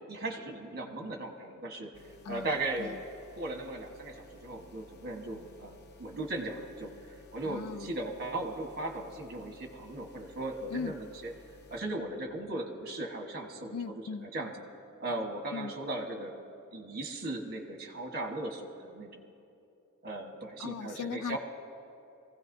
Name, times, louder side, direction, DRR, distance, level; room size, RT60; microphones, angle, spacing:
voice 1, 0.1-1.9 2.3-3.0 3.3-6.9 7.3-11.3 11.7-13.8 14.3-14.5 15.0-16.3 16.7-19.2 20.0-21.4, right 2 dB, 45° right, 2 dB, 1.4 m, -37 dB
sound 1, 1.9-11.8, left 3 dB, 50° left, 0.8 m, -56 dB
voice 2, 2.2-3.0 7.4-7.9 10.7-11.0 13.6-14.3 15.5-15.7 20.6-21.4, left 5 dB, 85° left, 14 dB, 0.4 m, -39 dB
23.0 x 16.0 x 2.7 m, 2.7 s
head